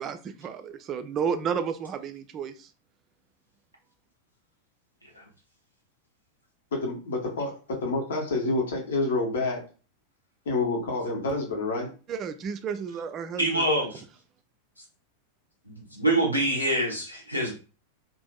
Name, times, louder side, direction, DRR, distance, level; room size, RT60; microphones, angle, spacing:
voice 1, 0.0-2.7 12.1-13.7, right 7 dB, 30° right, 0.3 m, -32 dB
voice 2, 6.7-9.6 10.5-11.9, left 2 dB, 60° left, 1.0 m, -28 dB
voice 3, 13.4-14.0 15.7-17.5, right 1 dB, 90° left, 0.9 m, -25 dB
2.6 x 2.5 x 2.2 m
figure-of-eight pair, 90°, 0 cm